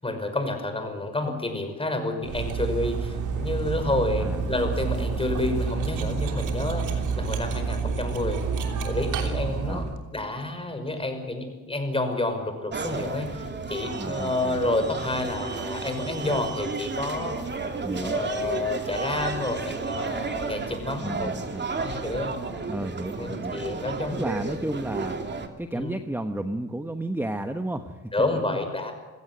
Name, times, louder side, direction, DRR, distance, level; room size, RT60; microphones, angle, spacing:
voice 1, 0.0-8.4 8.8-9.9 10.1-17.4 18.0-21.3 21.8-22.4 23.2-24.2 25.7-25.9 28.1-28.9, left 2 dB, 20° left, 6 dB, 5.8 m, -29 dB
Cutlery silverware, 2.2-10.0, right 5 dB, 85° right, 3.2 m, -28 dB
voice 2, 4.2-4.7 9.6-9.9 13.9-14.6 17.8-18.2 21.0-21.7 22.7-23.6 24.1-25.2 25.6-28.1, right 1 dB, 5° right, 8 dB, 1.2 m, -32 dB
sound 1, 12.7-25.5, right 4 dB, 35° right, 2.8 m, -32 dB
26.0 x 16.5 x 8.1 m, 1.3 s
cardioid pair, 90°, 30 cm